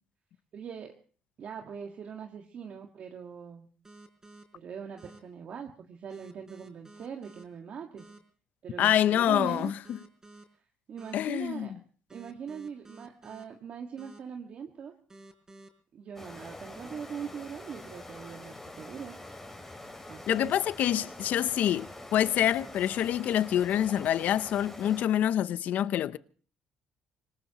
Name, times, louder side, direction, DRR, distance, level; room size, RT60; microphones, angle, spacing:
voice 1, 0.5-1.0 1.4-3.7 4.5-8.1 8.6-9.7 10.9-11.7 12.1-14.9 15.9-19.2 20.1-20.5, right 7 dB, 50° right, 1.8 m, -41 dB
sound 1, 3.8-4.4 5.0-5.2 6.1-7.4 8.0-8.2 9.1-10.4 11.0-11.2 12.1-13.4 14.0-14.2 15.1-15.7, right 2 dB, 20° right, 4.8 m, -51 dB
voice 2, 8.8-10.0 11.1-11.7 20.3-26.2, left 11 dB, 65° left, 0.7 m, -26 dB
sound 2, 16.2-25.0, left 1 dB, 10° left, 4.6 m, -45 dB
26.0 x 19.0 x 3.0 m
cardioid pair, 95°, 3 cm